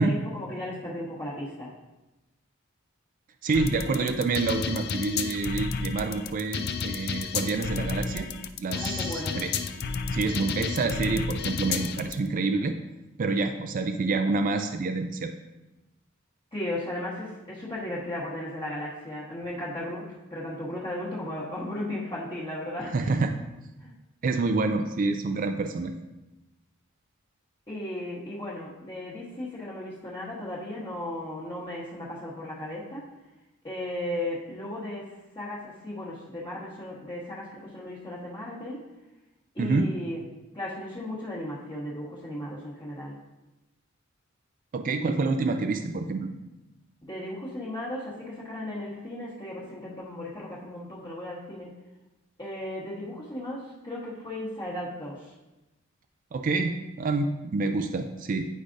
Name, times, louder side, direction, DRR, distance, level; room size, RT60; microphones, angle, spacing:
voice 1, 0.0-1.7 8.7-9.4 16.5-22.9 23.8-23.9 27.7-33.1 33.6-38.8 39.5-40.2 40.5-43.2 47.0-51.7 52.4-55.3, left 1 dB, 25° left, -8 dB, 1.3 m, -36 dB
voice 2, 3.4-8.3 8.6-9.5 10.1-12.7 13.2-15.3 22.9-23.3 24.2-25.9 39.6-39.9 44.7-46.3 56.3-58.5, right 3 dB, 40° right, 6 dB, 0.3 m, -27 dB
sound 1, 3.5-12.1, left 5 dB, 50° left, 0.4 m, -31 dB
9.7 x 4.9 x 2.6 m, 1.0 s
head